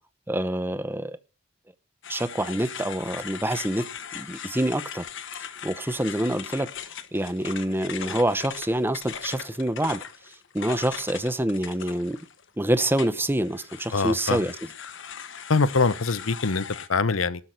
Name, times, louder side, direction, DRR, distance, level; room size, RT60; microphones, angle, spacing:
voice 1, 0.3-1.2 2.1-3.9 4.1-5.0 5.6-6.7 7.1-10.0 10.5-12.2 12.6-14.6, right 1 dB, 10° right, 0.9 m, -26 dB
sound 1, 2.0-12.5 13.0-16.9, left 8 dB, 65° left, 1.2 m, -39 dB
voice 2, 13.9-14.4 15.5-17.4, left 4 dB, 85° left, 0.9 m, -24 dB
13.0 x 6.0 x 9.3 m
head